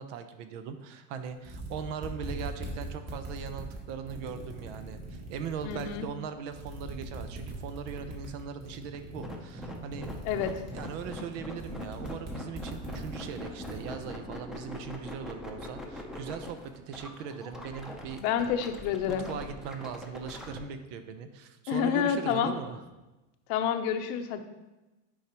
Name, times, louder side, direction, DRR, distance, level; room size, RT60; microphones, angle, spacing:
voice 1, 0.0-10.1 10.7-18.2 19.1-22.8, right 7 dB, 75° right, 9 dB, 0.8 m, -39 dB
sound 1, 1.2-1.3 1.4-6.1 6.5-14.0, right 2 dB, 40° right, 2.1 m, -41 dB
voice 2, 5.6-6.1 10.3-10.5 18.2-19.3 21.7-22.5 23.5-24.4, left 8 dB, 65° left, 8 dB, 0.8 m, -28 dB
sound 2, 8.9-20.6, left 1 dB, ahead, 0.6 m, -42 dB
10.0 x 4.8 x 3.0 m, 1.1 s
supercardioid pair, 140°, 37 cm